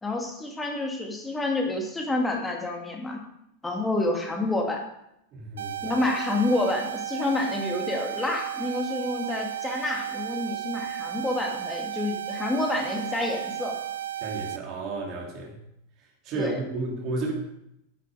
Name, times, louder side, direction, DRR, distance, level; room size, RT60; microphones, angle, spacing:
voice 1, 0.0-3.2 3.6-4.8 5.8-13.8 16.3-16.6, left 2 dB, 10° left, 2 dB, 2.2 m, -28 dB
voice 2, 5.3-5.9 14.2-15.6 16.2-17.3, right 3 dB, 35° right, 0 dB, 2.9 m, -32 dB
sound 1, 5.6-14.6, right 12 dB, 65° right, 0.4 m, -34 dB
10.5 x 8.2 x 4.8 m, 0.79 s
figure-of-eight pair, 90°, 0 cm